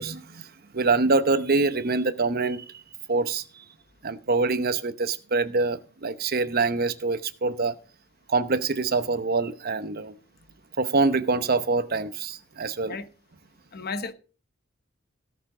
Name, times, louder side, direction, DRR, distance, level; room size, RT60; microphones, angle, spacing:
voice 1, 0.0-2.6 3.1-3.4 4.0-7.8 8.3-10.1 10.8-12.9, right 3 dB, 50° right, 0.9 m, -25 dB
voice 2, 13.7-14.1, left 4 dB, 50° left, 1.1 m, -33 dB
17.5 x 6.9 x 5.0 m
head